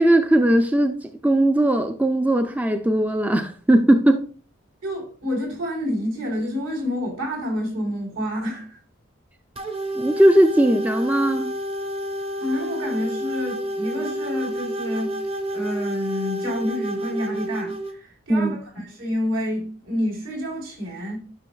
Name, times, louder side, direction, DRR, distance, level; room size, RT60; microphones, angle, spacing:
voice 1, 0.0-4.3 9.9-11.5 18.3-18.6, right 1 dB, 5° right, 0.4 m, -18 dB
voice 2, 4.8-8.8 12.4-15.2 15.5-21.2, left 1 dB, 70° right, 4.0 m, -28 dB
sound 1, 9.6-17.9, equal, 30° right, 0.8 m, -29 dB
11.0 x 6.0 x 2.3 m
head